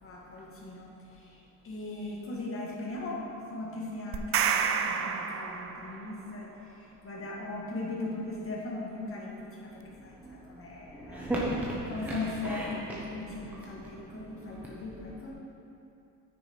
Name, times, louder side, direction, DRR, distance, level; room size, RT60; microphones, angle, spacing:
voice 1, 0.0-0.9 1.6-3.2 3.5-6.5 7.0-9.7 10.0-11.3 11.9-15.3, left 2 dB, 35° left, -3 dB, 2.0 m, -38 dB
sound 1, 4.1-6.1, right 7 dB, 35° right, 0.5 m, -29 dB
voice 2, 11.0-12.2 12.4-12.7, right 1 dB, 5° right, -6 dB, 1.0 m, -33 dB
9.0 x 6.5 x 4.6 m, 2.7 s
cardioid pair, 105°, 38 cm